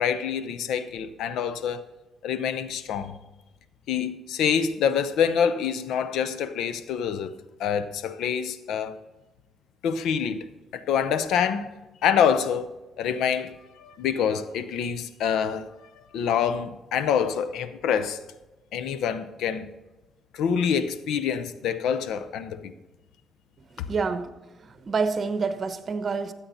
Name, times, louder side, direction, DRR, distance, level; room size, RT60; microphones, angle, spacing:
voice 1, 0.0-1.8 2.2-3.1 3.9-9.0 9.8-10.5 10.7-11.7 12.0-12.7 13.0-15.7 16.1-18.2 18.7-19.7 20.3-22.7 23.8-23.9, left 7 dB, 85° left, 0.6 m, -26 dB
voice 2, 23.9-24.3 24.8-26.3, right 4 dB, 45° right, 1.0 m, -27 dB
13.0 x 8.3 x 4.1 m
cardioid pair, 90°, 0 cm